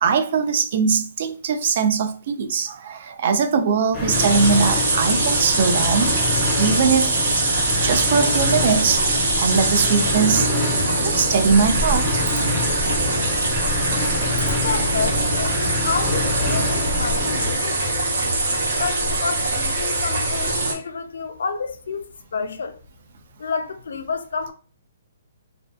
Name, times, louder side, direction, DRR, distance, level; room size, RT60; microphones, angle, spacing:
voice 1, 0.0-6.1 6.6-7.2 7.8-9.1 9.4-10.5 11.0-12.2 13.0-13.2, right 5 dB, 45° right, 0.3 m, -21 dB
sound 1, 3.9-17.5, left 2 dB, 5° left, 0.5 m, -27 dB
sound 2, 4.1-20.7, right 2 dB, 75° right, 1.0 m, -23 dB
voice 2, 14.5-18.0 18.7-22.8 23.4-24.5, left 5 dB, 75° left, 0.3 m, -29 dB
2.4 x 2.3 x 2.3 m
hypercardioid pair, 165°, 0 cm